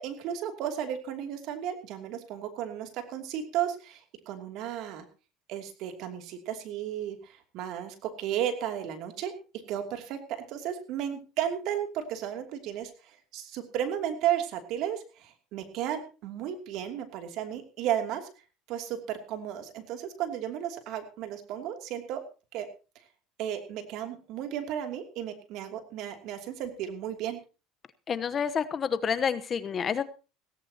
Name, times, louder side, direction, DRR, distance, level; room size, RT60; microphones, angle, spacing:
voice 1, 0.0-5.0 5.5-9.3 9.7-10.2 10.5-18.3 18.7-22.2 22.5-22.7 23.4-27.4, right 10 dB, 65° right, 6 dB, 2.8 m, -34 dB
voice 2, 28.1-30.0, left 7 dB, 35° left, 13 dB, 1.0 m, -28 dB
17.0 x 17.0 x 2.9 m, 0.32 s
supercardioid pair, 105°, 0 cm